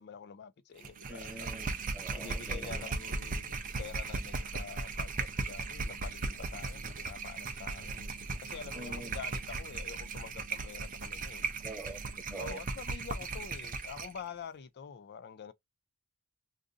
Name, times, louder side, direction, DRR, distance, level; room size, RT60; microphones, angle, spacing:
voice 1, 0.0-1.6 2.2-8.1 8.4-11.5 12.4-15.5, left 6 dB, 50° left, 0.4 m, -46 dB
sound 1, 0.8-14.2, right 3 dB, 40° right, 0.6 m, -37 dB
sound 2, 0.9-12.6, right 4 dB, 85° right, 0.5 m, -56 dB
voice 2, 1.1-2.9 8.7-9.1 11.6-12.0 12.3-12.6, right 2 dB, 5° right, 0.8 m, -45 dB
2.6 x 2.5 x 3.6 m
head